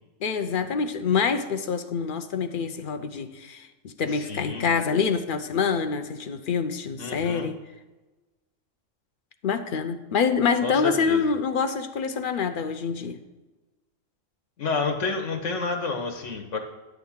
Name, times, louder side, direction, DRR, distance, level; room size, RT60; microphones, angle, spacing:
voice 1, 0.2-7.6 9.4-13.2, left 6 dB, 55° left, 9 dB, 0.6 m, -26 dB
voice 2, 4.1-4.7 7.0-7.5 10.6-11.3 14.6-16.6, left 4 dB, 70° left, 4 dB, 1.4 m, -29 dB
10.5 x 3.6 x 7.2 m, 1.2 s
omnidirectional pair, 1.3 m